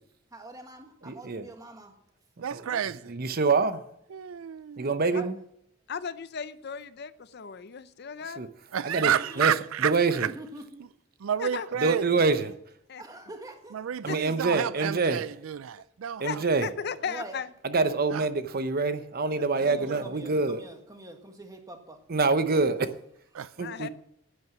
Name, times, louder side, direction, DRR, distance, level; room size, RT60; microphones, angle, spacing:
voice 1, 0.3-2.0 5.0-5.3 9.0-9.5 10.3-10.8 13.0-13.8 17.0-17.4 19.6-22.0 22.4-22.6, right 1 dB, 15° right, 1.5 m, -44 dB
voice 2, 1.0-1.5 2.5-2.6 3.1-3.8 4.8-5.4 8.4-8.5 8.8-9.1 9.4-9.5 9.8-10.3 11.8-12.5 14.0-15.2 16.2-16.7 17.6-20.6 22.1-22.9 23.6-23.9, right 3 dB, 45° right, 0.7 m, -26 dB
voice 3, 2.4-3.2 4.1-5.0 8.7-10.3 11.2-12.1 13.7-16.4 18.1-18.3 19.6-20.0 23.3-23.5, right 9 dB, 80° right, 0.4 m, -30 dB
voice 4, 5.9-8.5 11.4-11.7 12.9-13.0 14.1-14.2 16.2-17.5 23.6-23.9, left 6 dB, 55° left, 0.6 m, -36 dB
10.5 x 9.6 x 6.0 m
head